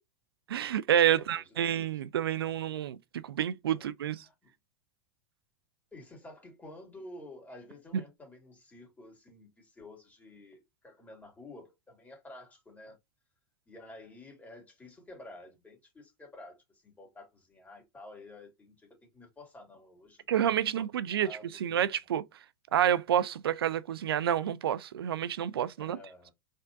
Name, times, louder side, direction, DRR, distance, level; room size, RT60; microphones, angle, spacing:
voice 1, 0.5-3.0 3.2-4.2 20.3-21.3 21.6-22.2 22.7-26.0, right 10 dB, 80° right, 0.5 m, -28 dB
voice 2, 1.1-2.0 3.7-3.9 4.2-4.3 5.9-13.0 13.7-18.8 19.0-20.8 21.1-21.8 25.8-26.3, left 2 dB, 15° left, 2.5 m, -51 dB
4.3 x 3.6 x 2.6 m
hypercardioid pair, 95°, 12 cm